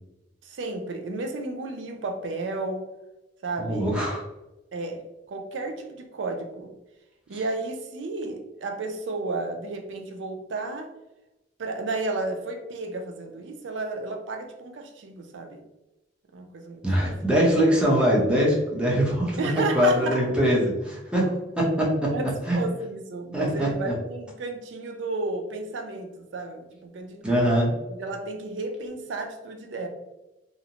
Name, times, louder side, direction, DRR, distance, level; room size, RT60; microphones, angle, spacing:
voice 1, 0.4-2.9 3.4-4.0 4.7-6.7 7.3-10.9 11.6-15.6 16.3-17.3 19.4-20.2 22.0-27.5 27.9-29.9, right 3 dB, 90° right, 4 dB, 0.4 m, -32 dB
voice 2, 3.6-4.2 16.8-22.1 22.5-22.6 23.3-23.9 27.2-27.7, equal, 5° right, -4 dB, 0.7 m, -23 dB
2.5 x 2.0 x 2.8 m, 0.96 s
head